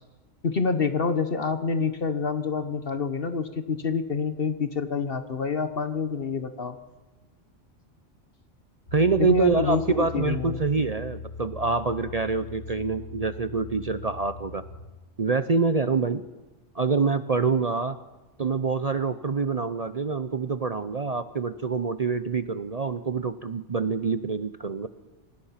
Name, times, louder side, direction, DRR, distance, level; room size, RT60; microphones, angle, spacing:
voice 1, 0.4-6.8 9.2-10.6, left 5 dB, 50° left, 10 dB, 1.3 m, -27 dB
sound 1, 8.9-14.9, left 4 dB, 75° left, 2.3 m, -40 dB
voice 2, 8.9-14.6 15.2-16.2 16.7-18.0 18.4-24.9, right 4 dB, 40° right, 12 dB, 0.7 m, -26 dB
26.0 x 18.5 x 5.8 m, 1.2 s
omnidirectional pair, 1.2 m